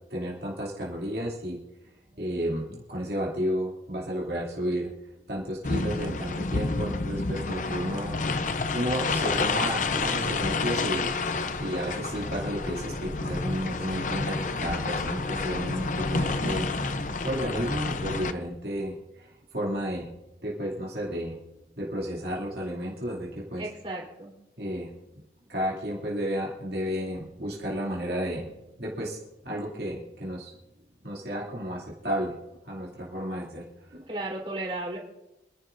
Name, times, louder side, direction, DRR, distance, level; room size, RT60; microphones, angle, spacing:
voice 1, 0.1-1.6 2.2-4.9 5.3-8.1 8.7-11.2 11.6-16.7 17.0-20.1 20.4-21.4 21.8-23.6 24.6-24.9 25.5-28.5 28.8-29.2 29.4-30.5 31.0-32.3 32.6-33.6 33.9-34.0, equal, 60° right, -4 dB, 2.6 m, -32 dB
sound 1, 5.6-18.3, left 3 dB, 45° left, 0.7 m, -29 dB
voice 2, 7.4-7.9 23.6-24.3 34.1-35.0, right 2 dB, 30° right, -3 dB, 3.6 m, -35 dB
26.5 x 11.0 x 2.6 m, 0.93 s
head